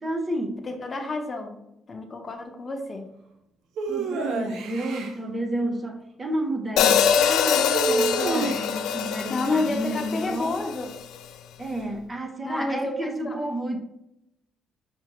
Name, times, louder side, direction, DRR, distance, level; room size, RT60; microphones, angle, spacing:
voice 1, 0.0-0.6 3.9-10.6 11.6-13.8, right 1 dB, 25° right, 0.6 m, -30 dB
voice 2, 0.6-1.6 1.9-3.0 9.3-10.9 12.4-13.4, left 2 dB, 35° left, 0.8 m, -29 dB
sound 1, 3.8-5.1 7.7-8.9, right 3 dB, 80° right, 0.6 m, -28 dB
Hi-hat, 6.8-11.0, left 8 dB, 85° left, 0.3 m, -24 dB
5.8 x 2.7 x 3.0 m
cardioid pair, 90°, 0 cm